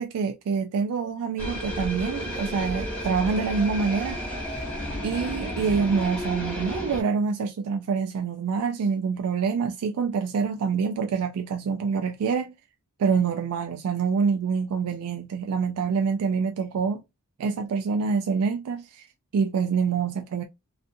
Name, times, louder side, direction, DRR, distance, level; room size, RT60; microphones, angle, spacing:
voice 1, 0.0-4.2 5.0-12.5 13.0-17.0 17.4-19.1 19.3-20.4, right 5 dB, 80° right, 0.3 m, -26 dB
sound 1, 1.4-7.0, equal, 5° left, 0.9 m, -32 dB
2.5 x 2.4 x 2.5 m
head